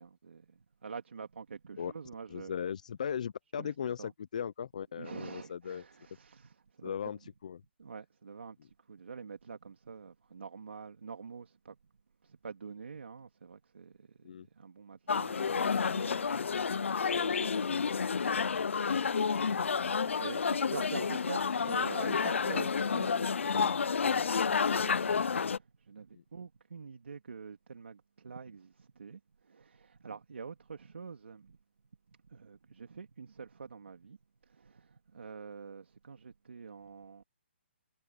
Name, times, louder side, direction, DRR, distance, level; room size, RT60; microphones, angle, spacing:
voice 1, 0.0-2.5 3.6-3.7 4.0-4.1 5.0-7.2 7.8-11.8 12.2-31.6 32.3-34.2 34.4-37.2, right 5 dB, 70° right, 3.0 m, -47 dB
voice 2, 2.3-5.8 6.8-7.6 14.2-14.5 26.1-26.2, left 8 dB, 35° left, 0.5 m, -38 dB
sound 1, 15.1-25.6, left 5 dB, 85° left, 0.5 m, -30 dB
hypercardioid pair, 175°, 7 cm